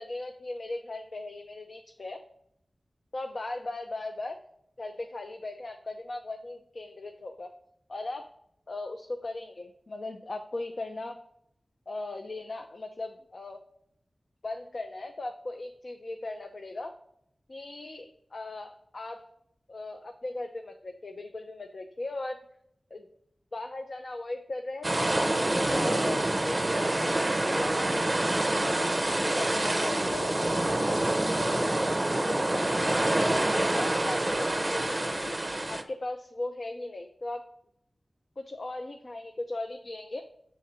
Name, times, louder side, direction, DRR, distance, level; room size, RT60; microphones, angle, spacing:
voice 1, 0.0-2.2 3.1-4.4 4.8-7.5 7.9-8.3 8.7-11.2 11.9-13.6 14.4-16.9 17.5-19.3 19.7-22.4 22.9-23.1 23.5-27.2 27.5-28.6 29.2-31.7 32.1-35.3 35.7-37.4 38.4-40.2, left 2 dB, 60° left, 4 dB, 0.5 m, -38 dB
sound 1, 24.8-35.8, right 1 dB, 25° right, 0.6 m, -27 dB
6.4 x 3.8 x 4.3 m, 0.72 s
wide cardioid pair, 90°, 0 cm